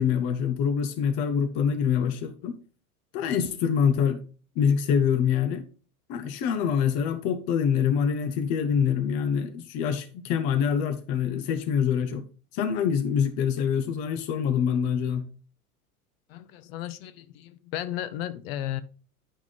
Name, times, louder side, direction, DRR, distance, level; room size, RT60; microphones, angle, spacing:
voice 1, 0.0-2.6 3.1-4.2 4.6-5.7 6.1-12.2 12.5-15.3, left 7 dB, 20° left, 0.4 m, -25 dB
voice 2, 16.3-18.8, left 12 dB, 40° left, 0.8 m, -34 dB
10.0 x 5.8 x 3.9 m
figure-of-eight pair, 90°, 46 cm